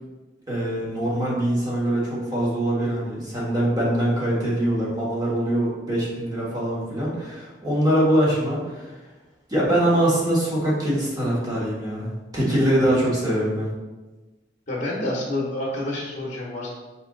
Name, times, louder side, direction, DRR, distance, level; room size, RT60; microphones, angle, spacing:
voice 1, 0.5-8.9 9.5-13.7, right 1 dB, 20° right, -6 dB, 1.3 m, -23 dB
voice 2, 14.7-16.7, left 1 dB, 45° left, -3 dB, 0.9 m, -28 dB
4.4 x 2.9 x 3.7 m, 1.2 s
head